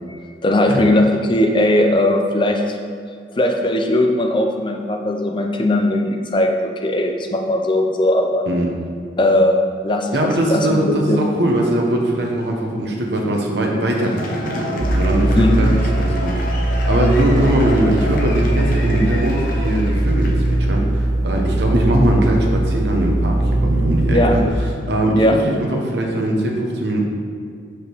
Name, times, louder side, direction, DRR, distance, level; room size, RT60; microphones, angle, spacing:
voice 1, 0.1-2.6 3.3-8.5 9.2-9.6 9.8-11.2 15.4-15.8 19.6-19.7 24.1-24.4 25.1-25.4, left 1 dB, 25° left, 3 dB, 0.6 m, -18 dB
voice 2, 10.1-16.3 16.9-24.4 24.9-27.0, right 1 dB, 60° right, 0 dB, 1.1 m, -20 dB
Cheering / Applause / Crowd, 13.9-20.7, left 2 dB, 50° left, 0.9 m, -31 dB
sound 1, 14.8-24.5, right 1 dB, 40° right, 0.7 m, -20 dB
5.2 x 4.9 x 6.1 m, 2.2 s
head